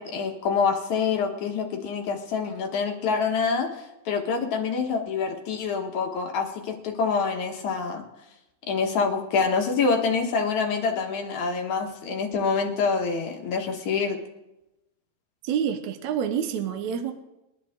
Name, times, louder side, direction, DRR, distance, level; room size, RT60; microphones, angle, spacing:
voice 1, 0.0-8.0 8.7-14.2, left 5 dB, 65° left, 2 dB, 2.6 m, -26 dB
voice 2, 15.4-17.1, right 8 dB, 70° right, 7 dB, 2.0 m, -27 dB
22.5 x 11.0 x 3.6 m, 0.95 s
omnidirectional pair, 3.8 m